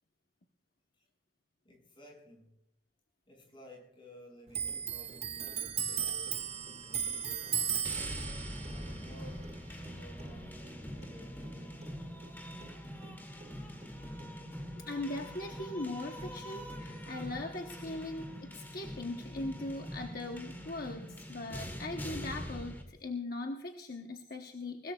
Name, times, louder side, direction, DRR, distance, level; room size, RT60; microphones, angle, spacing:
voice 1, 1.6-2.5 3.3-8.2 8.7-12.0, equal, 30° left, -1 dB, 6.2 m, -55 dB
Clock, 4.5-11.5 11.8-13.1 13.4-14.3, right 8 dB, 35° right, 0.7 m, -37 dB
sound 1, 7.8-22.8, equal, 10° left, 2.2 m, -43 dB
voice 2, 14.8-24.9, left 2 dB, 50° left, 3 dB, 1.0 m, -40 dB
21.0 x 20.5 x 2.4 m, 0.80 s
head